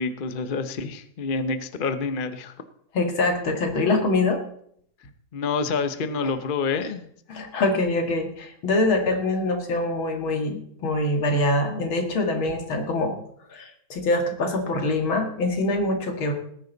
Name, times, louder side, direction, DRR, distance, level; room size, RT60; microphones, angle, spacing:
voice 1, 0.0-2.5 5.3-7.1, left 4 dB, 45° left, 10 dB, 0.7 m, -27 dB
voice 2, 2.9-4.4 6.2-6.3 7.3-13.2 13.5-16.3, left 2 dB, 80° left, 4 dB, 2.8 m, -24 dB
18.5 x 10.0 x 4.0 m, 0.67 s
omnidirectional pair, 2.2 m